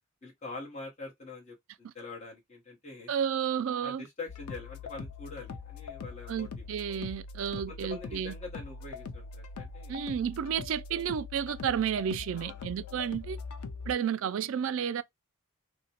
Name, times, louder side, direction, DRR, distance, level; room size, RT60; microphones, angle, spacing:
voice 1, 0.2-3.1 3.8-6.7 7.7-10.0 12.3-12.7, left 3 dB, 30° left, 1.0 m, -44 dB
voice 2, 3.1-4.0 6.3-8.3 9.9-13.4 13.9-15.0, right 8 dB, 60° right, 0.3 m, -31 dB
sound 1, 4.3-13.9, left 4 dB, 85° left, 0.5 m, -42 dB
2.8 x 2.1 x 2.8 m
head